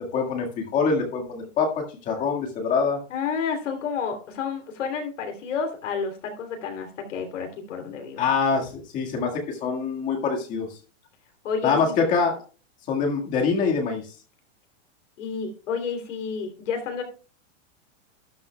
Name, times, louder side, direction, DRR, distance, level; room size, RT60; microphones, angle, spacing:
voice 1, 0.1-3.0 8.2-10.7 11.6-12.4 12.9-14.0, left 5 dB, 20° left, 1 dB, 1.8 m, -24 dB
voice 2, 3.1-8.3 11.4-12.0 15.2-17.0, left 6 dB, 75° left, 4 dB, 3.2 m, -30 dB
12.0 x 11.0 x 2.3 m, 0.37 s
supercardioid pair, 170°, 37 cm